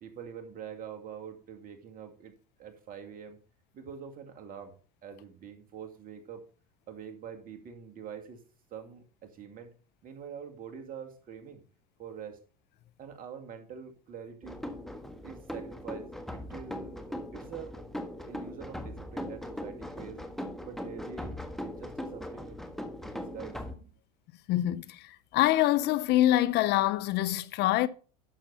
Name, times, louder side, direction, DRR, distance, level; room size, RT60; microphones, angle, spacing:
voice 1, 0.0-2.3 2.6-3.4 3.7-4.8 5.0-6.4 6.9-8.4 8.7-9.7 10.0-11.6 12.0-12.4 13.0-14.6 15.2-17.8 18.3-20.3 20.6-22.7 23.0-23.9, right 7 dB, 45° right, 2.3 m, -45 dB
sound 1, 14.4-23.8, left 1 dB, ahead, 1.5 m, -40 dB
voice 2, 24.5-27.9, left 14 dB, 55° left, 0.6 m, -25 dB
11.0 x 6.9 x 4.2 m
hypercardioid pair, 85°, 21 cm